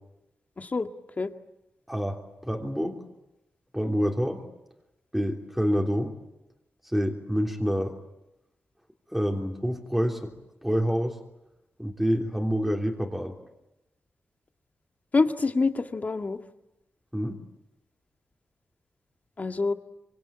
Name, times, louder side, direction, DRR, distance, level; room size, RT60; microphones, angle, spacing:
voice 1, 0.6-0.9 1.2-1.3 15.1-16.4 19.4-19.7, left 3 dB, 40° left, 6 dB, 1.9 m, -26 dB
voice 2, 1.9-3.0 3.7-4.4 5.1-6.2 6.8-7.9 9.1-10.3 10.6-11.2 11.8-13.3 17.1-17.4, equal, 5° right, 1 dB, 3.4 m, -27 dB
25.5 x 25.5 x 8.9 m, 0.91 s
wide cardioid pair, 90°, 4 cm